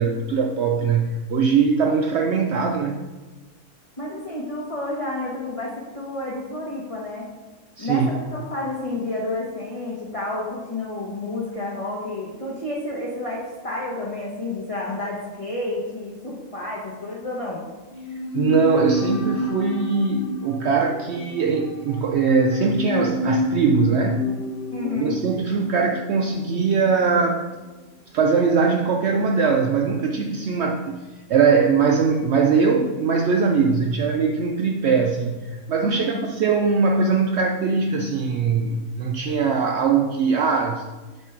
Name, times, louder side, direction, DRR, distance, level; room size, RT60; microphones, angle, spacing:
voice 1, 0.0-3.0 7.8-8.1 18.3-24.3 25.0-27.4 28.1-31.0 31.3-40.8, right 5 dB, 75° right, 2 dB, 0.6 m, -21 dB
voice 2, 4.0-7.3 7.8-17.6 24.7-25.2 35.8-36.2, left 2 dB, 25° left, -4 dB, 0.9 m, -30 dB
sound 1, 17.9-27.2 27.5-27.6, left 2 dB, 90° left, 1.6 m, -29 dB
8.1 x 3.3 x 5.7 m, 1.2 s
omnidirectional pair, 1.7 m